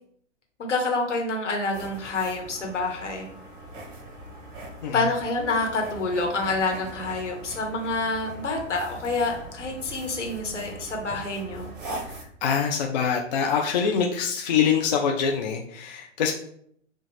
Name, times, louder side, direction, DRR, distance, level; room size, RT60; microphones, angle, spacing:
voice 1, 0.6-3.3 4.9-11.7, left 3 dB, 70° left, 1 dB, 1.4 m, -27 dB
sound 1, 1.7-12.2, right 2 dB, 45° right, 1.2 m, -41 dB
voice 2, 12.1-16.3, left 7 dB, 35° left, 1 dB, 0.5 m, -25 dB
6.2 x 2.4 x 3.1 m, 0.66 s
figure-of-eight pair, 120°, 37 cm